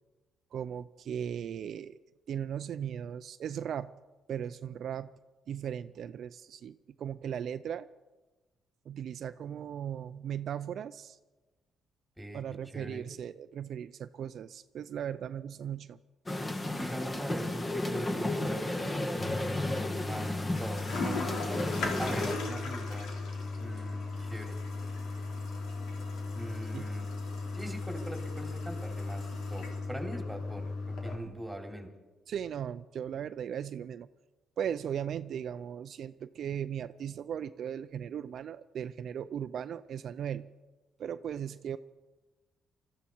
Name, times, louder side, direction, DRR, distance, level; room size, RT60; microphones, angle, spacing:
voice 1, 0.5-2.0 2.3-3.9 4.3-5.1 5.5-7.9 8.9-11.2 12.3-16.0 26.7-26.9 32.3-34.1 34.6-40.5 41.0-41.8, right 9 dB, 65° right, 11 dB, 0.5 m, -37 dB
voice 2, 12.7-13.1 16.6-20.3 20.6-21.3 22.0-23.1 23.6-24.6 26.4-27.1 27.5-31.9, right 1 dB, 5° right, 3 dB, 3.3 m, -41 dB
sound 1, 16.3-22.4, left 1 dB, 25° left, 1.7 m, -33 dB
Toilet flush, 19.2-31.2, left 3 dB, 75° left, 3.1 m, -36 dB
21.5 x 14.0 x 4.6 m, 1.2 s
cardioid pair, 90°, 0 cm